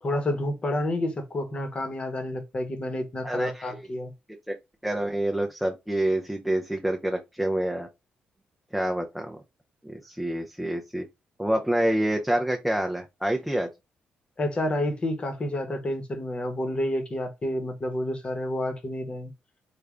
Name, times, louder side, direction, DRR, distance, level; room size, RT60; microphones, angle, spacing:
voice 1, 0.0-4.1 14.4-19.3, left 1 dB, 35° left, 1.0 m, -29 dB
voice 2, 3.2-3.8 4.5-4.6 4.8-7.9 8.7-9.4 9.8-11.0 11.4-13.7, right 1 dB, ahead, 0.5 m, -27 dB
3.2 x 2.3 x 3.6 m
cardioid pair, 105°, 3 cm